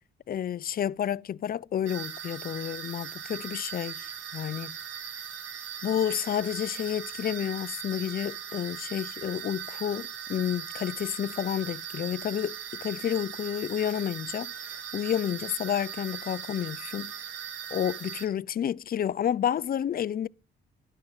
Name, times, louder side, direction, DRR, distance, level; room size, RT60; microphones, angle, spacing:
voice 1, 0.3-4.8 5.8-14.5 14.9-17.1 17.7-20.3, left 9 dB, 45° left, 0.6 m, -30 dB
sound 1, 1.9-18.3, right 8 dB, 85° right, 2.5 m, -39 dB
13.0 x 11.5 x 7.3 m
cardioid pair, 90°, 20 cm